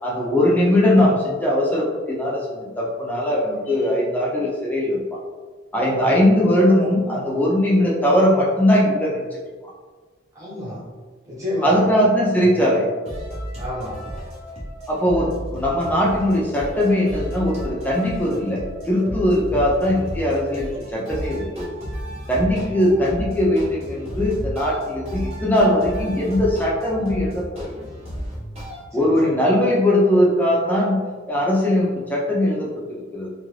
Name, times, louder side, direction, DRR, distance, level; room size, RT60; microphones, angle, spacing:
voice 1, 0.0-5.0 5.7-9.4 11.6-12.9 14.9-21.8 22.3-27.7 28.9-31.0 31.3-32.7 33.1-33.3, left 1 dB, 10° left, -4 dB, 0.5 m, -20 dB
voice 2, 10.3-10.8 11.3-11.9 12.4-12.6 13.6-14.0 19.5-19.6 22.5-22.7 29.0-29.3, left 1 dB, 15° right, -8 dB, 1.0 m, -30 dB
sound 1, 13.1-28.8, equal, 30° right, 0.6 m, -33 dB
2.7 x 2.5 x 3.2 m, 1.4 s
head